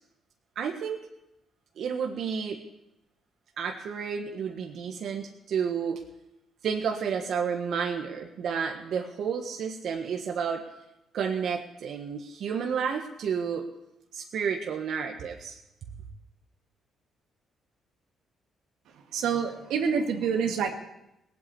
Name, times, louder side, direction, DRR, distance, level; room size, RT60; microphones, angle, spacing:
voice 1, 0.5-1.0 1.8-2.6 3.6-6.0 6.6-10.6 11.1-13.6 14.1-15.6 16.0-16.1, right 6 dB, 65° right, 3 dB, 1.5 m, -31 dB
voice 2, 19.1-20.7, right 6 dB, 85° right, 3 dB, 2.0 m, -27 dB
18.5 x 8.4 x 8.5 m, 0.89 s
cardioid pair, 90°, 0 cm